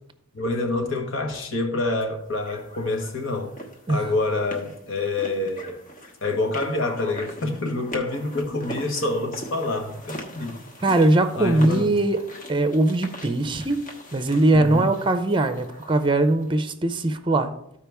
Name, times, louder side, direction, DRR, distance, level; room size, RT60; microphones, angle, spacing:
voice 1, 0.3-3.5 3.9-5.8 6.2-10.6 11.3-12.0 14.5-15.0, left 2 dB, 65° left, 1.4 m, -27 dB
sound 1, 2.4-16.5, equal, 40° left, 1.3 m, -41 dB
voice 2, 10.8-12.2 12.5-13.8 14.1-17.5, right 2 dB, 25° right, 0.6 m, -21 dB
13.5 x 4.9 x 3.5 m
head